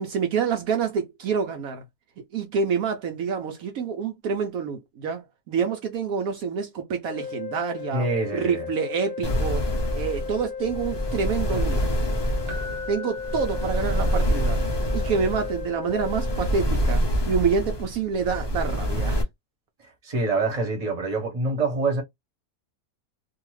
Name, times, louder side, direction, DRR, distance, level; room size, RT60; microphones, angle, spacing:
voice 1, 0.0-1.8 2.3-8.1 8.3-9.7 9.9-11.8 12.9-14.6 14.9-19.2, right 6 dB, 70° right, 1.0 m, -27 dB
sound 1, 7.0-16.7, left 6 dB, 75° left, 1.0 m, -35 dB
voice 2, 7.9-8.7 20.0-22.0, right 3 dB, 30° right, 1.1 m, -25 dB
sound 2, 9.2-19.2, equal, 40° left, 0.3 m, -26 dB
Keyboard (musical), 12.5-14.4 17.7-17.8, left 2 dB, 55° right, 0.6 m, -41 dB
2.6 x 2.4 x 3.1 m
omnidirectional pair, 1.6 m